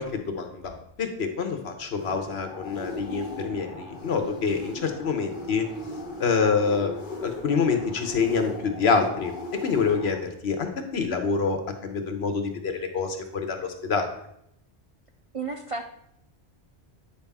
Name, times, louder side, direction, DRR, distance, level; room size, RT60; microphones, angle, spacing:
voice 1, 0.0-5.6 6.2-6.9 7.2-9.3 9.6-14.1, left 5 dB, 70° left, 6 dB, 1.3 m, -26 dB
sound 1, 2.0-10.2, left 2 dB, 50° left, 1.2 m, -38 dB
voice 2, 15.3-15.9, right 4 dB, 50° right, 4 dB, 0.4 m, -32 dB
9.1 x 5.6 x 3.5 m, 0.75 s
omnidirectional pair, 1.1 m